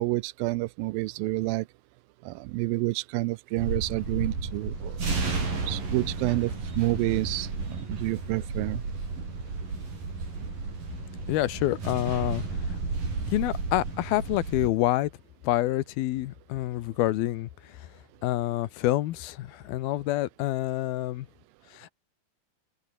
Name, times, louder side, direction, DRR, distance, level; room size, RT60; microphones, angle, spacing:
voice 1, 0.0-1.7 2.3-5.0 5.7-6.5 6.8-8.8, right 21 dB, 80° right, 2.3 m, -29 dB
sound 1, 3.6-14.7, right 4 dB, 65° right, 9.2 m, -33 dB
voice 2, 11.3-12.4 13.3-15.1 15.4-17.5 18.2-21.3 21.8-21.9, left 15 dB, 85° left, 2.9 m, -27 dB
open air
omnidirectional pair, 4.2 m